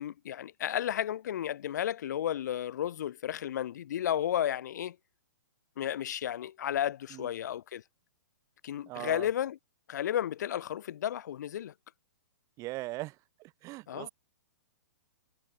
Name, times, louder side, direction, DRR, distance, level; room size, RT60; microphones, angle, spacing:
voice 1, 0.0-5.0 5.8-7.8 8.6-9.6 9.9-11.7 13.9-14.1, left 10 dB, 60° left, 2.1 m, -33 dB
voice 2, 8.9-9.3 12.6-14.1, right 20 dB, 30° right, 2.5 m, -40 dB
hypercardioid pair, 135°, 10 cm